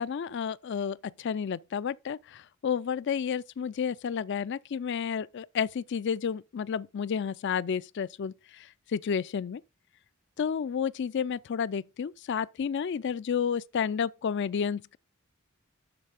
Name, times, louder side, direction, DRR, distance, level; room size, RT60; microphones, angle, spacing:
voice 1, 0.0-9.6 10.4-15.0, left 7 dB, 55° left, 0.4 m, -31 dB
12.0 x 4.3 x 4.8 m
head